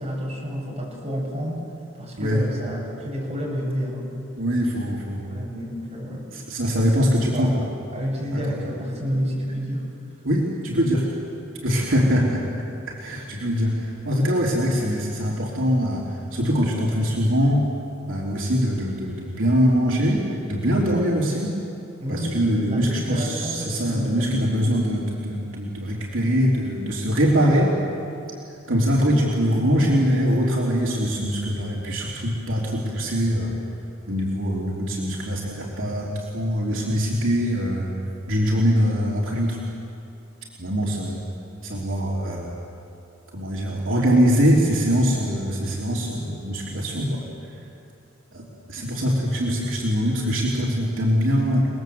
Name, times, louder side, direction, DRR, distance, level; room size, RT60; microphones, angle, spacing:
voice 1, 0.0-1.7 1.9-4.1 5.2-6.3 7.3-7.6 7.9-9.9 22.0-24.5, equal, 35° right, -3 dB, 7.8 m, -29 dB
voice 2, 4.4-5.2 6.3-7.6 8.3-8.4 10.2-11.1 11.6-12.4 12.9-17.7 18.1-21.6 22.1-27.7 28.7-33.5 34.1-37.9 38.3-39.6 40.6-41.2 41.6-42.5 43.3-47.2 48.3-51.7, equal, 70° right, -3 dB, 3.4 m, -23 dB
29.5 x 20.5 x 8.0 m, 2.7 s
head